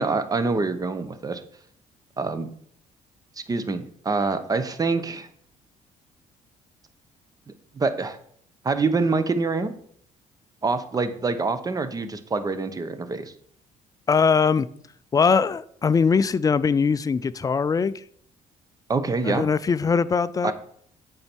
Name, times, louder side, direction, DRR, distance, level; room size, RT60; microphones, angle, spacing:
voice 1, 0.0-1.4 2.2-2.5 3.5-5.3 7.5-8.2 8.6-9.7 10.6-13.3 18.9-19.4 20.4-20.5, right 4 dB, 25° right, 0.9 m, -25 dB
voice 2, 14.1-14.7 15.1-18.0 19.2-20.5, left 5 dB, 25° left, 0.4 m, -21 dB
8.6 x 5.5 x 4.5 m
cardioid pair, 105°, 14 cm